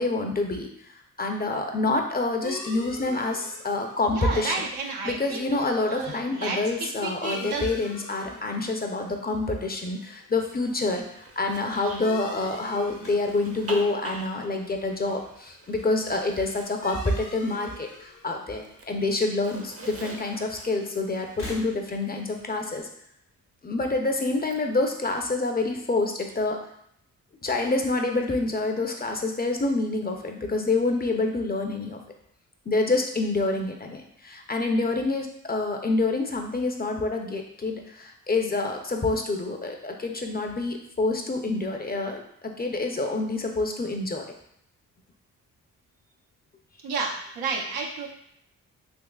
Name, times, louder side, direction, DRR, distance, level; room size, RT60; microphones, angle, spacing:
voice 1, 0.0-4.6 5.0-22.9 23.6-26.6 27.4-32.0 32.7-42.2 42.6-44.2, left 2 dB, 25° left, 3 dB, 0.6 m, -27 dB
sound 1, 2.4-21.6, left 4 dB, 55° left, 0.9 m, -47 dB
voice 2, 4.1-7.7 46.8-48.1, right 4 dB, 85° right, -1 dB, 0.7 m, -32 dB
Zipper (clothing), 10.3-18.2 18.5-22.9 24.3-25.1, right 2 dB, 40° right, 0.7 m, -46 dB
sound 2, 12.9-15.3 15.6-16.2 17.2-18.2 18.5-18.6 19.7-19.8 21.2-22.2, left 2 dB, 80° left, 1.0 m, -45 dB
3.6 x 3.0 x 2.3 m, 0.73 s
supercardioid pair, 45°, 36 cm